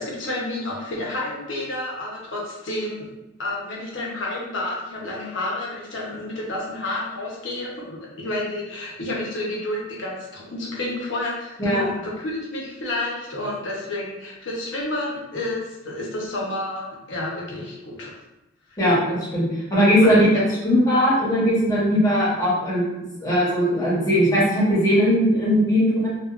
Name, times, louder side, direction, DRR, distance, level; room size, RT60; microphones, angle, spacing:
voice 1, 0.0-3.1 3.4-18.2 18.7-18.8 20.0-20.2, left 1 dB, 75° left, -3 dB, 0.8 m, -30 dB
voice 2, 18.8-20.3 20.6-26.1, equal, 20° left, -8 dB, 1.0 m, -19 dB
2.7 x 2.3 x 2.3 m, 0.96 s
head